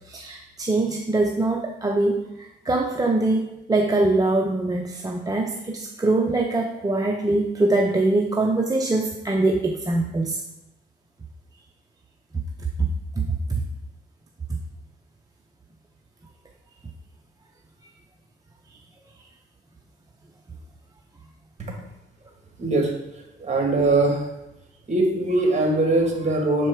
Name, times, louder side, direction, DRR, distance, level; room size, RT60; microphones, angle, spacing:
voice 1, 0.1-10.4 12.8-12.9 13.2-13.6, right 2 dB, 20° right, 1 dB, 0.6 m, -23 dB
voice 2, 22.6-24.3 24.9-26.7, right 2 dB, 35° right, 1 dB, 1.9 m, -22 dB
6.6 x 4.5 x 4.6 m, 0.88 s
cardioid pair, 90°, 20 cm